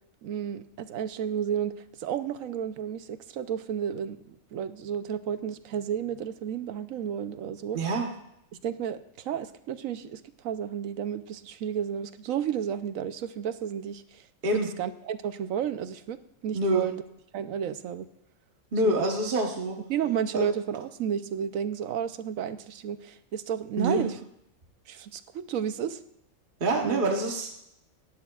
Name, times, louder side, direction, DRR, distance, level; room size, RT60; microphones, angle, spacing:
voice 1, 0.2-7.8 8.6-14.2 14.5-17.0 17.3-18.1 18.8-19.0 19.9-24.2 24.9-26.0 26.8-27.1, right 8 dB, 80° right, 12 dB, 1.1 m, -32 dB
voice 2, 7.7-8.1 14.4-14.7 16.5-16.9 18.7-19.8 20.3-20.5 23.8-24.1 26.6-27.5, right 1 dB, 40° right, 1 dB, 1.3 m, -26 dB
18.0 x 11.0 x 2.4 m, 0.79 s
omnidirectional pair, 1.4 m